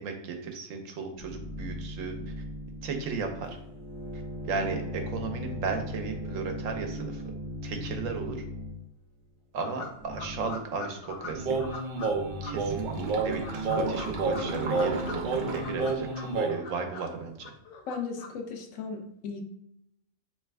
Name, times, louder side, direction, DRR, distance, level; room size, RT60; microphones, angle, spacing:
voice 1, 0.0-2.2 2.8-3.5 4.4-7.2 7.6-8.4 9.5-11.6 12.4-17.5, right 5 dB, 85° right, 5 dB, 1.1 m, -35 dB
sound 1, 1.2-8.8 9.9-10.5 11.1-11.8 12.0-16.0, left 1 dB, 25° right, 0.9 m, -40 dB
sound 2, 9.6-12.1 12.4-12.5 13.2-15.2 15.4-17.1 17.4-18.3, left 4 dB, 55° left, 0.7 m, -42 dB
sound 3, 11.4-16.6, right 3 dB, 55° right, 0.6 m, -30 dB
voice 2, 17.9-19.4, left 5 dB, 85° left, 3 dB, 1.1 m, -36 dB
3.2 x 3.0 x 3.4 m, 0.82 s
omnidirectional pair, 1.3 m